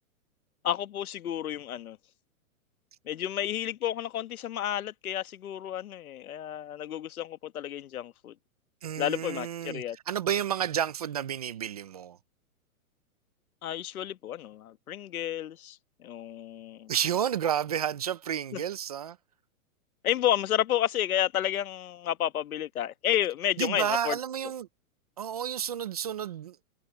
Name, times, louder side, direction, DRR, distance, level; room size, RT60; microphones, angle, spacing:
voice 1, 0.6-2.0 3.0-8.3 9.0-10.0 13.6-16.9 18.5-18.6 20.0-24.2, left 11 dB, 75° left, 1.4 m, -31 dB
voice 2, 8.8-12.2 16.9-19.2 23.6-24.7 25.2-26.6, right 9 dB, 30° right, 0.4 m, -31 dB
hypercardioid pair, 155°, 43 cm